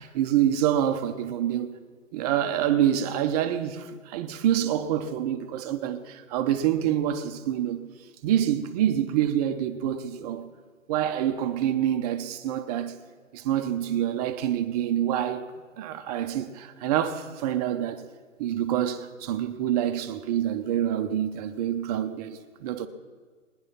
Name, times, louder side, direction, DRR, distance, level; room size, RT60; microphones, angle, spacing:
voice 1, 0.0-1.8 2.1-7.9 8.2-10.5 10.9-13.0 13.3-15.5 15.8-18.0 18.4-22.9, right 10 dB, 30° right, 0.8 m, -26 dB
19.5 x 10.5 x 5.8 m
figure-of-eight pair, 120°, 39 cm